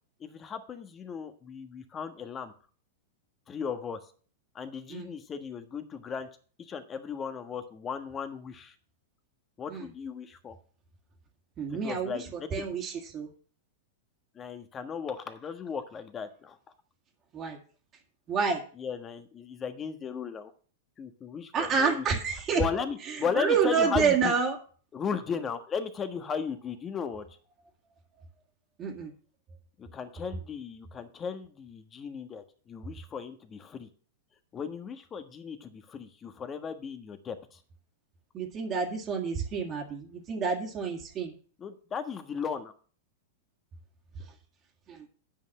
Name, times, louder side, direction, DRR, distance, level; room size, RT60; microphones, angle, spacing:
voice 1, 0.2-2.5 3.5-4.0 4.5-6.3 6.6-8.7 9.6-10.6 11.7-12.6 14.3-16.6 18.8-20.5 21.0-22.0 22.5-24.3 24.9-27.2 29.8-33.9 34.5-37.6 41.6-42.7, left 6 dB, 25° left, 9 dB, 1.4 m, -36 dB
voice 2, 11.6-13.3 17.3-17.6 18.3-18.6 21.5-22.6 23.1-24.6 28.8-29.1 38.3-41.3 44.9-45.1, right 6 dB, 30° right, 0 dB, 2.0 m, -29 dB
9.1 x 5.6 x 7.3 m, 0.42 s
hypercardioid pair, 115°, 0 cm